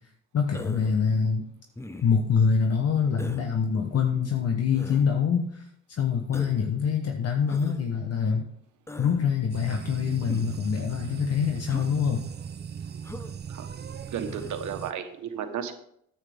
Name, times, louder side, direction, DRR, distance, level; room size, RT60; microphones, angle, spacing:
voice 1, 0.3-1.4 2.0-8.5 9.0-12.2, left 6 dB, 55° left, 4 dB, 1.1 m, -25 dB
Human voice, 0.5-1.0 1.8-2.3 3.2-3.5 4.7-5.1 6.3-6.7 7.5-7.8 8.9-9.2 10.3-10.6 11.7-11.9 13.0-13.3 14.3-14.6, left 2 dB, 10° left, 0.6 m, -40 dB
sound 1, 9.5-14.9, right 7 dB, 35° right, 0.7 m, -38 dB
voice 2, 13.5-15.7, right 7 dB, 70° right, 7 dB, 1.3 m, -34 dB
9.9 x 8.3 x 3.6 m, 0.70 s
cardioid pair, 90°, 30 cm